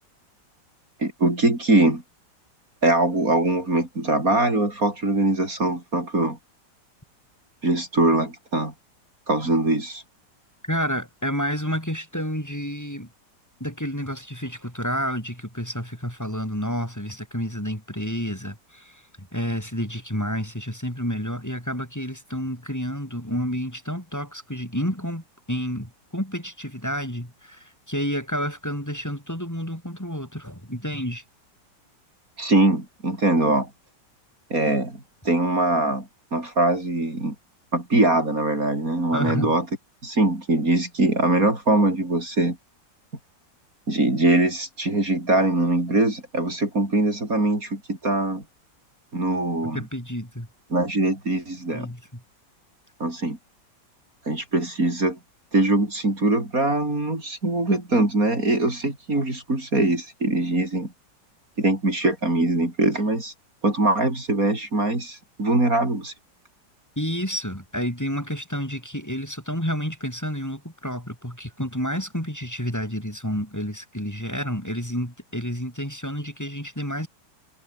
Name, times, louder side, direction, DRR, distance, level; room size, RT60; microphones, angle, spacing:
voice 1, 1.0-2.0 2.8-6.4 7.6-8.7 9.3-10.0 32.4-33.7 34.5-37.3 37.7-39.7 40.0-42.6 43.9-48.4 49.1-49.8 50.7-51.9 53.0-53.4 54.3-55.2 55.5-60.9 61.6-63.3 63.6-66.1, right 2 dB, 50° right, 6.3 m, -22 dB
voice 2, 10.6-13.1 13.6-31.2 39.1-39.5 49.7-50.5 51.7-52.2 67.0-77.1, equal, 10° left, 5.0 m, -30 dB
omnidirectional pair, 1.9 m